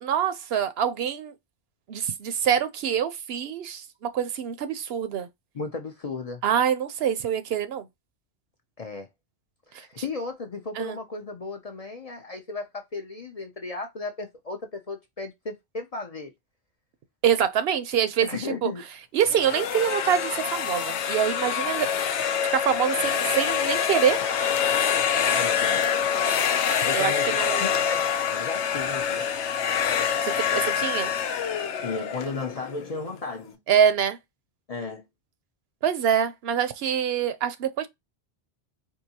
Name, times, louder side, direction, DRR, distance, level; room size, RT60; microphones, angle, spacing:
voice 1, 0.0-1.3 1.9-5.3 6.4-7.9 10.8-11.0 17.2-18.7 19.1-21.9 22.5-24.2 26.9-27.8 30.2-31.1 33.7-34.2 35.8-37.9, right 8 dB, 70° right, 0.8 m, -25 dB
voice 2, 5.5-6.4 8.8-9.1 9.7-16.3 18.2-18.8 25.3-25.8 26.8-29.3 31.8-33.6 34.7-35.0, left 3 dB, 45° left, 0.5 m, -35 dB
sound 1, 19.2-33.1, left 8 dB, 85° left, 0.9 m, -26 dB
4.5 x 2.6 x 2.8 m
omnidirectional pair, 1.1 m